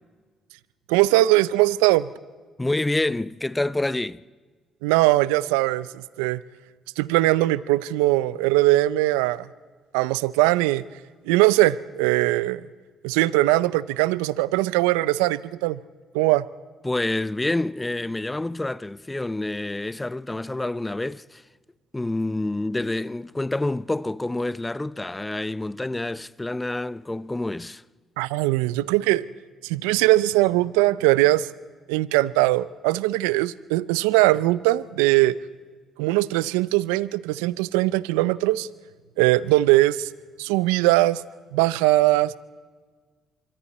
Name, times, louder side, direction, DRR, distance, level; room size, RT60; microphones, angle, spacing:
voice 1, 0.9-2.1 4.8-6.4 7.0-9.5 9.9-10.8 11.3-12.6 13.0-15.8 16.1-16.4 28.2-29.3 29.6-31.5 31.9-35.4 36.0-38.7 39.2-40.1 40.4-41.2 41.5-42.3, right 17 dB, 90° right, 0.5 m, -20 dB
voice 2, 2.6-4.2 16.8-21.4 21.9-27.8, left 2 dB, 15° left, 0.6 m, -27 dB
26.5 x 23.5 x 4.2 m
supercardioid pair, 60°, 0 cm